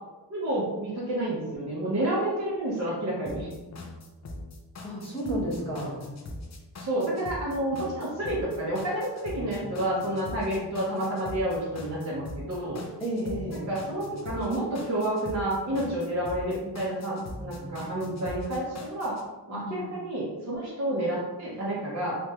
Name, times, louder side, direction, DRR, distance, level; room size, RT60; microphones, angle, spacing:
voice 1, 0.3-3.5 6.8-12.8 13.7-19.2 19.5-22.2, right 1 dB, 40° right, -7 dB, 0.6 m, -30 dB
sound 1, 3.2-19.2, left 2 dB, 40° left, 0.4 m, -41 dB
voice 2, 4.8-6.0 13.0-13.7 19.5-19.9, right 1 dB, 15° left, -7 dB, 0.8 m, -32 dB
3.0 x 3.0 x 2.3 m, 1.1 s
wide cardioid pair, 140°, 43 cm